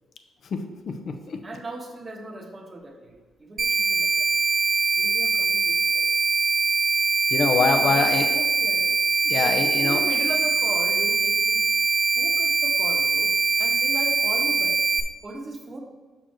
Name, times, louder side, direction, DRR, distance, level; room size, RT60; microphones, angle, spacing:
voice 1, 0.5-1.4 7.3-8.3 9.3-10.0, left 4 dB, 55° left, 7 dB, 0.8 m, -24 dB
voice 2, 1.4-4.3 5.0-6.1 7.8-9.0 9.3-11.6 12.1-13.3 13.6-14.8 15.2-15.8, right 2 dB, 30° right, 2 dB, 1.3 m, -37 dB
sound 1, 3.6-15.0, right 5 dB, 45° right, 1.0 m, -22 dB
7.0 x 6.1 x 4.5 m, 1.3 s
cardioid pair, 90°, 0 cm